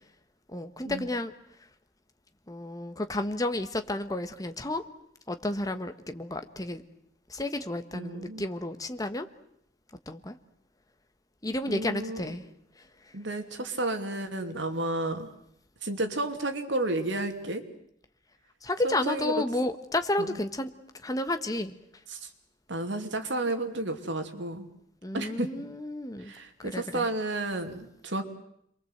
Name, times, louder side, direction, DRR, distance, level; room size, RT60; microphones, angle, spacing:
voice 1, 0.5-1.3 2.5-4.8 5.3-6.8 7.3-9.3 10.1-10.3 11.4-12.5 18.6-20.7 21.0-21.8 25.0-26.3 26.6-27.1, left 1 dB, 20° left, 8 dB, 1.4 m, -31 dB
voice 2, 7.9-8.5 11.7-12.4 13.1-15.3 15.8-17.6 18.8-19.4 20.2-20.4 22.1-22.3 22.7-24.7 25.1-25.5 26.2-28.3, right 2 dB, 85° right, 6 dB, 2.8 m, -32 dB
28.0 x 23.0 x 8.1 m, 0.75 s
head